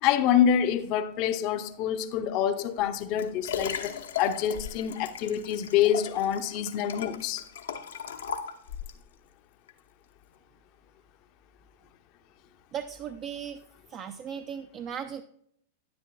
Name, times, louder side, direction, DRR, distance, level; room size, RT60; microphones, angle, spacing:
voice 1, 0.0-7.4, left 9 dB, 50° left, 0.7 m, -26 dB
Liquid, 2.8-9.0 9.7-9.8, left 7 dB, 75° left, 0.9 m, -37 dB
voice 2, 12.7-13.6 13.9-15.2, right 8 dB, 35° right, 0.5 m, -37 dB
10.5 x 9.5 x 2.3 m
hypercardioid pair, 100°, 0 cm